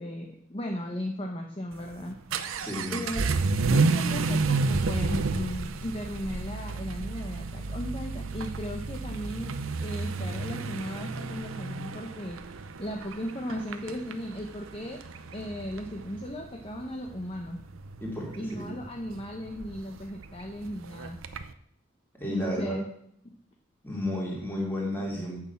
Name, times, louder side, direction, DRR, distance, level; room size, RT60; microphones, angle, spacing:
voice 1, 0.0-2.2 2.9-3.3 3.6-12.4 12.8-15.0 15.3-17.6 18.4-21.2 22.3-22.9 23.2-23.4, equal, 30° left, 2 dB, 0.9 m, -36 dB
Vehicle / Accelerating revving vroom, 1.7-21.5, right 3 dB, 75° right, 0.7 m, -31 dB
voice 2, 2.6-3.0 18.0-18.8 22.2-22.7 23.8-25.4, left 1 dB, 10° left, -3 dB, 3.0 m, -32 dB
8.9 x 6.5 x 7.1 m, 0.69 s
head